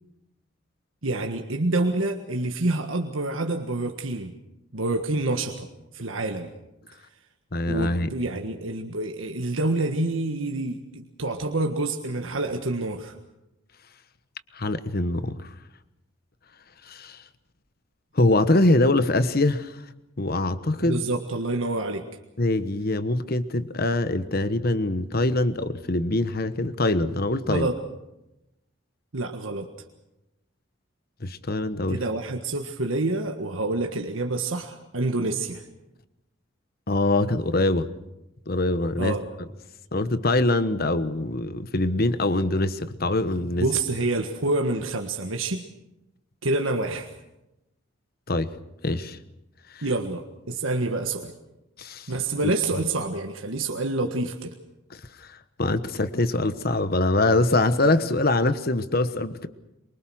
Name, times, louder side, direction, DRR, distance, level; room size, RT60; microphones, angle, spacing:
voice 1, 1.0-4.3 4.7-5.7 5.9-6.5 7.7-13.1 20.8-22.1 27.5-27.7 29.1-29.7 31.9-35.6 39.0-39.2 43.6-45.6 46.4-47.1 49.8-51.3 52.1-54.5, right 2 dB, 80° right, 4 dB, 1.6 m, -27 dB
voice 2, 7.5-8.1 14.5-15.4 16.9-17.2 18.1-19.7 20.2-21.0 22.4-27.7 31.2-32.0 36.9-37.9 38.5-39.2 39.9-43.6 48.3-48.5 48.8-49.2 49.7-49.8 51.8-52.1 52.4-52.5 54.9-55.0 55.3-59.5, left 2 dB, 50° left, 12 dB, 1.2 m, -23 dB
24.0 x 23.5 x 6.4 m, 0.93 s
head